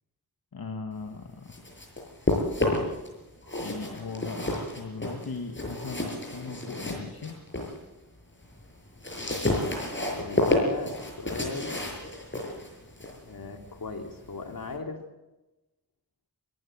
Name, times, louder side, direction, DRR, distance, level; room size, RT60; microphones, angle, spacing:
voice 1, 0.5-1.6 3.6-7.4, left 4 dB, 90° left, 3 dB, 1.8 m, -38 dB
sound 1, 1.2-3.1 3.4-7.8 8.2-14.8, left 1 dB, 35° left, 6.8 m, -31 dB
voice 2, 10.0-11.7 13.2-15.0, left 4 dB, 70° left, 4 dB, 2.8 m, -37 dB
23.0 x 15.5 x 8.7 m, 1.0 s
wide cardioid pair, 65°, 35 cm